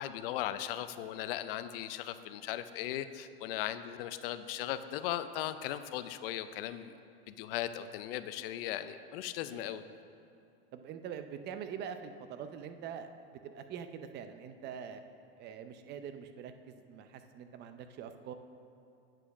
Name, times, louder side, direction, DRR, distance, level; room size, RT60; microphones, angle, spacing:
voice 1, 0.0-7.0 7.3-9.8, left 12 dB, 65° left, 12 dB, 0.5 m, -38 dB
voice 2, 9.5-9.9 10.7-15.0 15.3-18.3, right 7 dB, 35° right, 9 dB, 0.6 m, -44 dB
8.9 x 4.8 x 6.1 m, 2.6 s
supercardioid pair, 125°, 30 cm